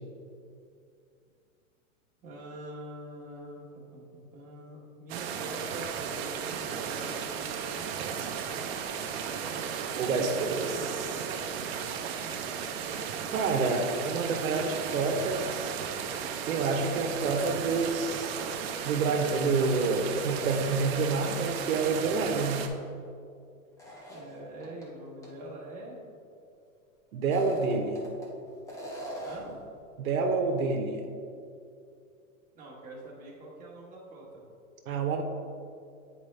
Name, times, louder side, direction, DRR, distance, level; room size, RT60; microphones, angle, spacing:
voice 1, 2.2-8.2 9.0-10.0 12.2-12.4 13.2-13.7 24.1-26.0 29.2-29.7 32.5-34.4, right 1 dB, 20° right, -5 dB, 1.4 m, -45 dB
sound 1, 5.1-22.7, right 7 dB, 50° right, 0.7 m, -35 dB
voice 2, 10.0-11.2 13.3-15.8 16.5-18.4 18.8-22.7 27.1-28.0 30.0-31.0 34.9-35.2, right 4 dB, 80° right, 3 dB, 0.9 m, -28 dB
sound 2, 23.8-24.8 25.2-25.3 27.1-28.3 28.7-29.6, right 1 dB, 10° left, 0.6 m, -41 dB
8.5 x 4.6 x 3.3 m, 2.4 s
supercardioid pair, 145°, 41 cm